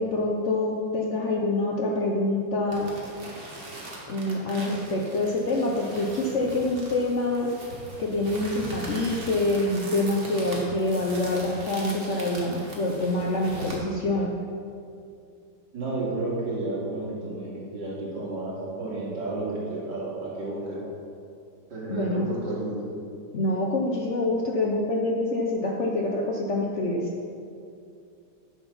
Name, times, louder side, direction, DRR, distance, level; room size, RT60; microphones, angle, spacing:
voice 1, 0.0-2.9 4.1-7.5 8.0-14.4 21.9-22.4 23.3-27.1, left 2 dB, 55° left, -1 dB, 0.8 m, -26 dB
sound 1, 2.7-13.8, right 1 dB, 30° right, 1.6 m, -40 dB
voice 2, 15.7-20.8 21.7-22.8, right 2 dB, 65° right, -7 dB, 3.0 m, -32 dB
9.6 x 6.4 x 5.4 m, 2.5 s
omnidirectional pair, 2.0 m